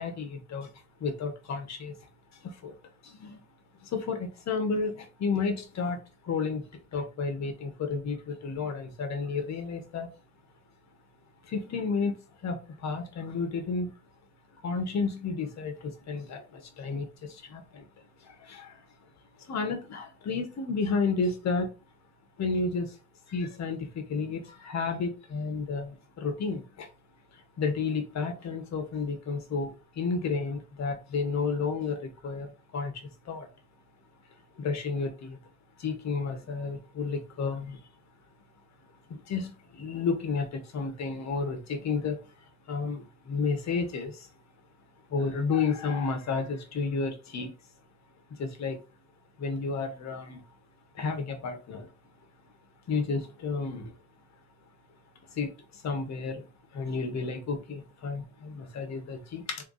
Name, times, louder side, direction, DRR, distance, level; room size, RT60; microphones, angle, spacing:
voice 1, 0.0-2.7 3.0-3.4 3.8-10.1 11.4-13.9 14.6-18.8 19.4-21.7 22.4-23.0 23.3-26.9 27.3-33.5 34.5-35.4 35.8-37.9 39.1-44.3 45.1-47.5 48.3-48.8 49.4-50.4 50.9-51.9 52.9-53.9 55.2-59.6, left 4 dB, 65° left, 1.3 m, -32 dB
3.5 x 3.5 x 4.1 m
cardioid pair, 90°, 30 cm